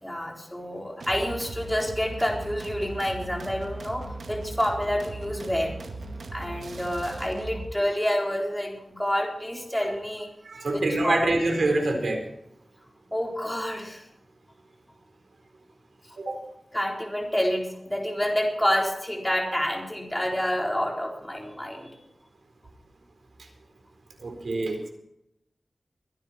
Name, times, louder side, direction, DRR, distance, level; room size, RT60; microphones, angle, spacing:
voice 1, 0.0-5.8 6.3-10.3 10.7-11.4 13.1-14.1 16.3-16.4 16.7-21.9, equal, 5° left, 0 dB, 4.1 m, -28 dB
sound 1, 1.0-7.7, right 2 dB, 90° right, 2.0 m, -38 dB
voice 2, 10.4-12.2 16.2-16.4 24.2-24.9, right 2 dB, 75° right, 3 dB, 4.1 m, -26 dB
23.0 x 10.5 x 4.4 m, 0.81 s
wide cardioid pair, 80°, 0 cm